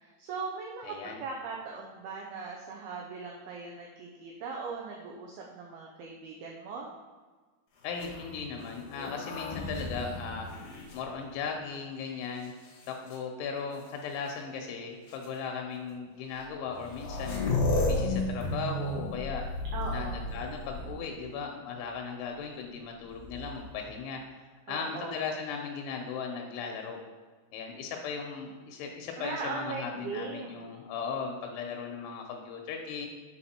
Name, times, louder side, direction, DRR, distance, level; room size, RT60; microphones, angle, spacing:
voice 1, 0.0-6.9 19.7-20.2 24.7-25.2 29.2-30.6, right 4 dB, 85° right, -1 dB, 2.2 m, -39 dB
voice 2, 0.8-1.2 7.8-10.5 10.9-12.5 12.9-17.4 17.8-19.5 19.9-24.2 24.7-27.0 27.5-33.1, left 5 dB, 85° left, 2 dB, 3.2 m, -37 dB
sound 1, 7.9-11.7 12.4-13.2 14.3-14.4 15.1-15.3 16.4-16.5 16.7-21.2 23.1-23.8, left 2 dB, 65° left, 1.9 m, -34 dB
8.1 x 4.8 x 4.3 m, 1.4 s
omnidirectional pair, 5.3 m